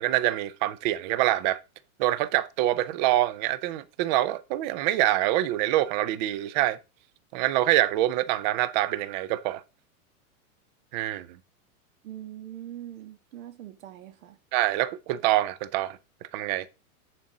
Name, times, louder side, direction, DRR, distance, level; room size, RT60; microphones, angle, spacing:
voice 1, 0.0-1.6 2.0-6.8 7.3-9.6 10.9-11.3 14.5-16.0 16.3-16.7, right 15 dB, 35° right, 0.5 m, -25 dB
voice 2, 12.0-14.4, right 12 dB, 65° right, 1.7 m, -42 dB
7.2 x 4.2 x 6.0 m
supercardioid pair, 140°, 45 cm